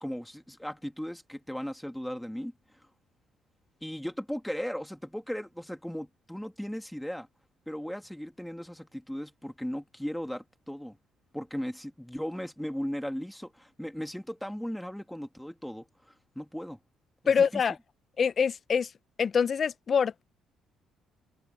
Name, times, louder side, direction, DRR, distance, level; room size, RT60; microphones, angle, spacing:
voice 1, 0.0-2.5 3.8-7.3 7.7-11.0 11.3-15.8 16.4-16.8 17.5-17.6, equal, ahead, 2.1 m, -37 dB
voice 2, 17.3-17.8 18.2-18.9 19.2-20.2, left 6 dB, 35° left, 0.7 m, -25 dB
cardioid pair, 145°, 0 cm